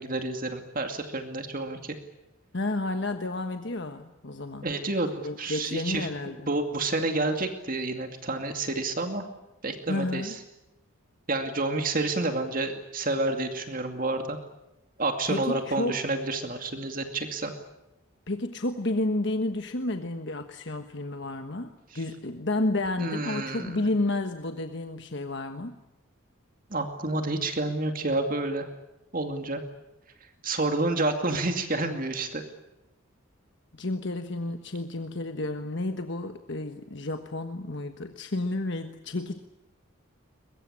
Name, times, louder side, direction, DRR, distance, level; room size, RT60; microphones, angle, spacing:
voice 1, 0.0-2.0 4.6-6.1 6.5-9.2 9.6-10.4 11.3-14.4 15.0-17.5 23.0-23.8 26.7-28.7 29.1-29.6 30.4-32.4, right 2 dB, 40° right, 6 dB, 2.4 m, -29 dB
voice 2, 2.5-4.7 5.2-6.5 9.9-10.3 15.3-16.0 18.3-25.8 33.7-39.4, left 2 dB, 55° left, 7 dB, 1.3 m, -31 dB
22.5 x 22.5 x 9.9 m, 0.93 s
head